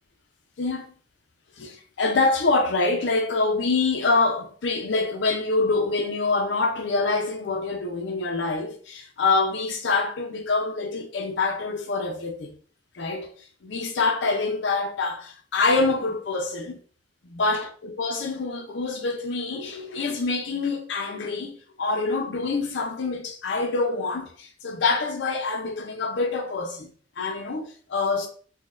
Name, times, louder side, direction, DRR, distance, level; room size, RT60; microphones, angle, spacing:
voice 1, 0.6-0.9 1.6-12.6 12.9-13.3 13.6-16.8 17.3-28.3, left 3 dB, 75° left, 0.5 m, -26 dB
4.0 x 2.1 x 2.4 m
head